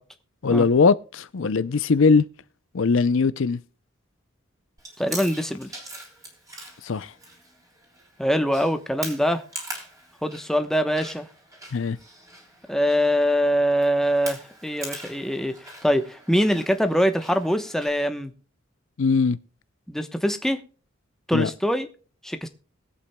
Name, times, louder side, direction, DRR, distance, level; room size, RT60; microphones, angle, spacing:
voice 1, 0.4-2.3 2.7-3.6 6.8-7.1 11.7-12.0 19.0-19.4 21.3-21.5, left 4 dB, 70° left, 0.5 m, -20 dB
Chewing mastication, 4.8-17.9, right 1 dB, 15° right, 3.3 m, -42 dB
voice 2, 5.0-5.7 8.2-9.4 10.2-11.3 12.7-15.5 15.8-18.3 19.9-20.6 21.3-21.9 22.2-22.5, equal, ahead, 0.9 m, -23 dB
21.5 x 8.4 x 2.2 m
head